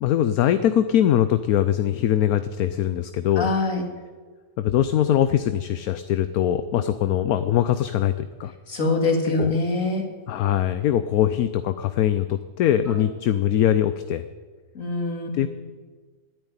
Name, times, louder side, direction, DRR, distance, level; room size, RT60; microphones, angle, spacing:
voice 1, 0.0-3.5 4.6-8.5 9.2-9.6 10.3-14.2 15.4-15.5, left 11 dB, 75° left, 11 dB, 1.1 m, -22 dB
voice 2, 3.4-3.8 8.7-10.0 14.7-15.3, left 3 dB, 55° left, 2 dB, 2.7 m, -23 dB
12.5 x 10.5 x 9.7 m, 1.5 s
omnidirectional pair, 1.6 m